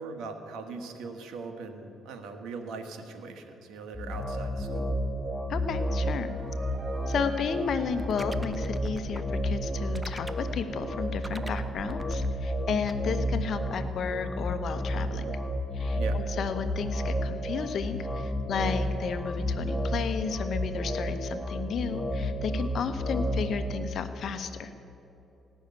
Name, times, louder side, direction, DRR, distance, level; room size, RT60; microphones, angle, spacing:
voice 1, 0.0-5.0 16.0-16.2, right 4 dB, 85° right, 5 dB, 1.4 m, -40 dB
sound 1, 3.9-23.6, equal, 5° left, 1.5 m, -31 dB
voice 2, 5.5-6.3 7.1-15.3 15.7-24.7, left 6 dB, 65° left, 10 dB, 1.0 m, -33 dB
sound 2, 5.7-9.7, right 4 dB, 55° right, 0.9 m, -49 dB
sound 3, 8.0-12.9, right 2 dB, 15° right, 0.6 m, -43 dB
16.5 x 6.4 x 9.5 m, 2.9 s
cardioid pair, 90°, 0 cm